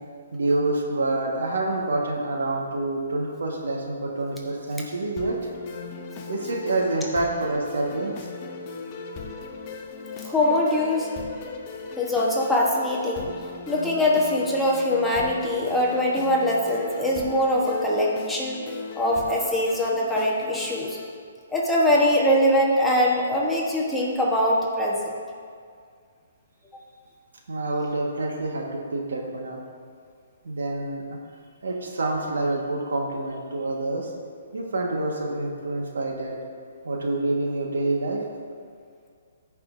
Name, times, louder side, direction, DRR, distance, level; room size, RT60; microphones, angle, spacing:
voice 1, 0.3-5.4 6.3-8.1 27.5-29.6 30.4-31.0 31.6-34.1 34.5-36.4 36.8-38.2, right 2 dB, 80° right, -1 dB, 1.6 m, -27 dB
sound 1, 5.2-21.2, left 4 dB, 30° left, 0.8 m, -38 dB
voice 2, 10.2-11.1 12.0-13.3 13.7-18.6 19.0-21.0 21.5-25.2, left 1 dB, 5° left, -5 dB, 1.2 m, -22 dB
16.0 x 5.4 x 2.7 m, 2.1 s
hypercardioid pair, 150°, 0 cm